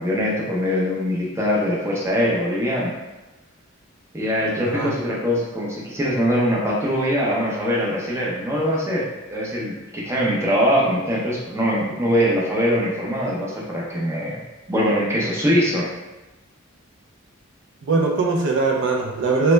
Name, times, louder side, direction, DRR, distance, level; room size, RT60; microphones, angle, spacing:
voice 1, 0.0-2.9 4.1-14.4 14.7-15.9, equal, 15° right, -4 dB, 0.6 m, -22 dB
voice 2, 4.5-4.9 17.8-19.5, right 3 dB, 60° right, 1 dB, 0.4 m, -21 dB
3.0 x 2.1 x 3.2 m, 1.1 s
head